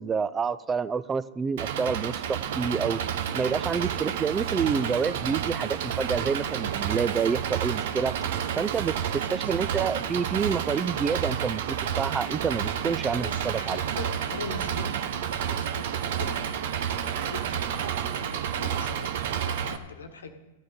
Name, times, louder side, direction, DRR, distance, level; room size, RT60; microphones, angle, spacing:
voice 1, 0.0-3.0 3.3-8.2 8.6-9.0 9.3-13.8, right 6 dB, 20° right, 16 dB, 0.5 m, -28 dB
Engine, 1.6-19.8, right 9 dB, 65° right, 0.8 m, -30 dB
voice 2, 9.1-9.5 13.2-17.9 18.2-20.3, left 3 dB, 85° left, 6 dB, 1.3 m, -42 dB
14.5 x 9.3 x 5.2 m, 1.1 s
hypercardioid pair, 115°, 0 cm